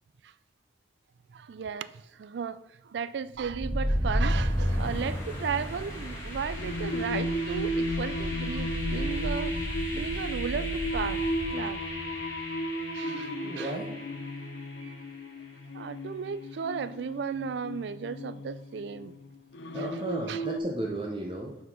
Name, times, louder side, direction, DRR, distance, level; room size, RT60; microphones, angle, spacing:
voice 1, 1.3-9.5 9.9-11.2 11.5-11.8 12.9-13.8 14.8-15.0 15.7-19.2 19.7-19.9 20.3-20.4, right 6 dB, 75° right, 0.3 m, -35 dB
sound 1, 3.4-15.2, equal, 15° left, 1.6 m, -33 dB
Singing, 6.6-20.6, equal, 80° left, 0.5 m, -35 dB
voice 2, 13.4-13.9 19.7-21.6, right 1 dB, 25° right, 0.6 m, -34 dB
6.2 x 4.6 x 5.5 m
head